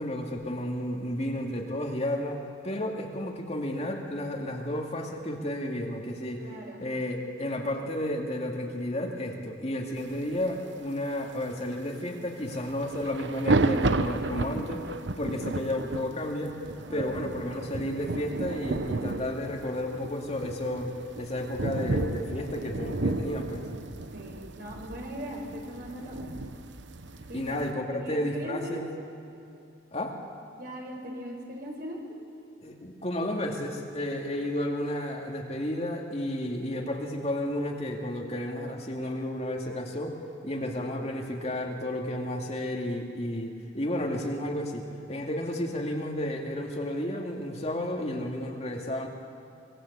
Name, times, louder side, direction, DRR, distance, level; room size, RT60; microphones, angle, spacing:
voice 1, 0.0-6.5 6.8-14.8 15.2-16.6 16.9-23.6 27.3-28.8 29.9-30.1 32.6-40.2 40.4-49.1, left 1 dB, 35° left, 1 dB, 2.4 m, -32 dB
voice 2, 6.4-6.8 16.9-17.3 24.1-26.3 27.3-27.6 27.9-28.8 30.5-32.0 40.5-40.8, equal, 50° right, 1 dB, 4.8 m, -39 dB
sound 1, 12.4-27.7, right 2 dB, 70° right, 1.0 m, -32 dB
26.0 x 21.0 x 8.3 m, 2.7 s
head